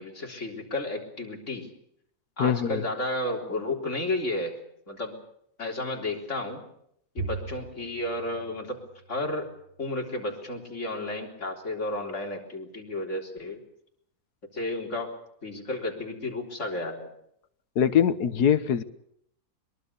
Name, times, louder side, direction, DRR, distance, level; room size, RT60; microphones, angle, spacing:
voice 1, 0.0-1.7 2.4-4.5 4.9-5.1 5.6-6.6 7.1-8.8 9.1-9.5 9.8-13.6 14.5-15.1 15.4-17.1, left 2 dB, 50° left, 1 dB, 4.1 m, -32 dB
voice 2, 2.4-2.8 17.7-18.8, left 8 dB, 90° left, 14 dB, 1.7 m, -22 dB
Bowed string instrument, 7.2-9.7, right 4 dB, 45° right, 4.6 m, -40 dB
23.0 x 22.5 x 6.8 m, 0.72 s
omnidirectional pair, 1.6 m